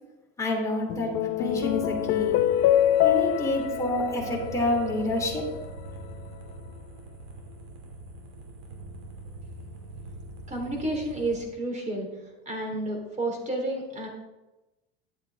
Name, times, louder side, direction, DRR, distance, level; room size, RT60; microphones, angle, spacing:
voice 1, 0.4-2.4 3.0-5.5, left 1 dB, 10° left, -2 dB, 3.1 m, -28 dB
sound 1, 0.9-5.5, left 12 dB, 50° left, 0.6 m, -25 dB
sound 2, 1.5-11.4, right 1 dB, 75° right, 2.6 m, -43 dB
voice 2, 10.5-12.1 12.4-14.1, right 1 dB, 20° right, 1 dB, 3.3 m, -30 dB
11.0 x 8.1 x 3.5 m, 1.0 s
supercardioid pair, 105°, 31 cm